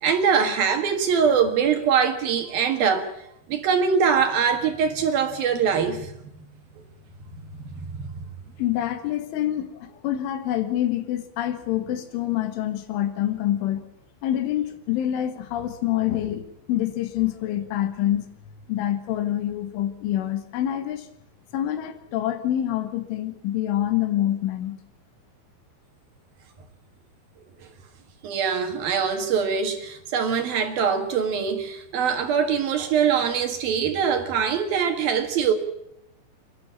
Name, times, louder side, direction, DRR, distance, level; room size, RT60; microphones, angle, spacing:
voice 1, 0.0-3.1 3.5-6.4 7.3-8.2 28.2-35.5, right 6 dB, 60° right, 6 dB, 3.0 m, -23 dB
voice 2, 8.6-13.8 14.2-18.3 18.7-21.1 21.5-24.8, left 12 dB, 85° left, 9 dB, 4.1 m, -26 dB
28.0 x 11.5 x 8.6 m, 0.80 s
omnidirectional pair, 5.4 m